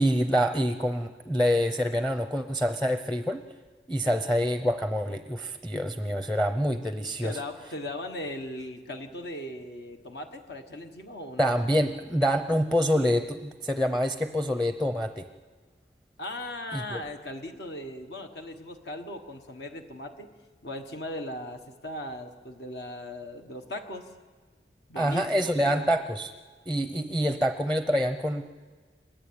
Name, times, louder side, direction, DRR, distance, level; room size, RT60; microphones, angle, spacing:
voice 1, 0.0-3.4 3.9-7.4 11.4-15.3 16.7-17.0 25.0-26.3 26.7-28.5, equal, 5° left, 9 dB, 0.7 m, -26 dB
voice 2, 7.2-11.5 16.2-20.3 20.6-24.1 24.9-25.9, left 1 dB, 65° left, 5 dB, 1.5 m, -38 dB
29.5 x 10.5 x 8.8 m, 1.5 s
head